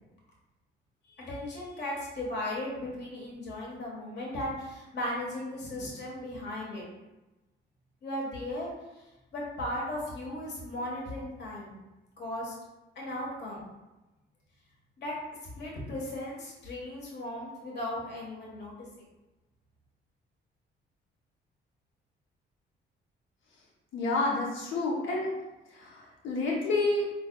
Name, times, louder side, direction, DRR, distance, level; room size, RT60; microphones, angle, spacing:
voice 1, 1.1-6.9 8.0-8.7 9.3-11.8 12.2-12.5 12.9-13.7 15.0-15.2 15.6-18.7, left 1 dB, 60° left, -3 dB, 1.3 m, -36 dB
voice 2, 23.9-25.3 25.7-27.0, left 2 dB, 75° left, -2 dB, 0.9 m, -29 dB
4.6 x 3.2 x 2.2 m, 1.0 s
cardioid pair, 90°, 20 cm